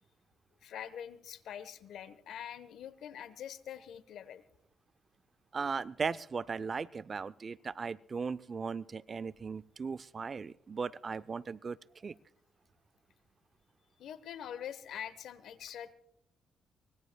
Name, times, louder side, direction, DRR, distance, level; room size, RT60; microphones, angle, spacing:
voice 1, 0.6-4.4 14.0-15.9, left 9 dB, 75° left, 15 dB, 1.1 m, -44 dB
voice 2, 5.5-11.8 12.0-12.2, right 5 dB, 40° right, 15 dB, 0.5 m, -37 dB
24.5 x 20.0 x 2.3 m, 0.72 s
cardioid pair, 90°, 0 cm